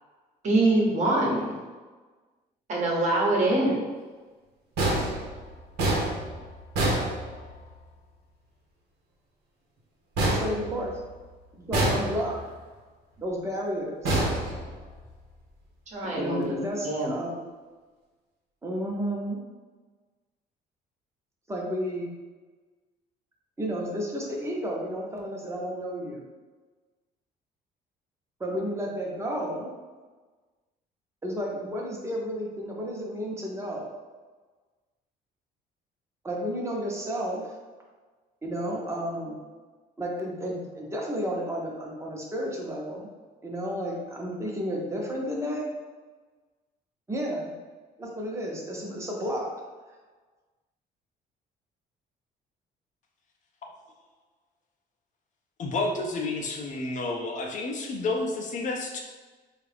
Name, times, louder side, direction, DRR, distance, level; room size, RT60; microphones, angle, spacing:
voice 1, 0.4-1.6 2.7-3.9 15.9-16.6 16.8-17.1, right 2 dB, 45° right, -3 dB, 1.0 m, -24 dB
sound 1, 4.8-7.8 10.2-11.2 11.7-12.5 14.0-15.1, right 1 dB, 85° right, 0.9 m, -27 dB
voice 2, 10.4-11.0 11.6-12.3 13.2-14.2 16.0-17.4 18.6-19.4 21.5-22.1 23.6-26.3 28.4-29.7 31.2-33.9 36.2-37.5 38.4-39.4 40.0-43.1 43.4-45.7 47.1-47.5 48.0-49.5, equal, 15° right, -2 dB, 0.8 m, -32 dB
voice 3, 55.6-59.0, left 2 dB, 45° left, 1 dB, 0.5 m, -30 dB
3.7 x 2.4 x 3.4 m, 1.3 s
cardioid pair, 110°, 17 cm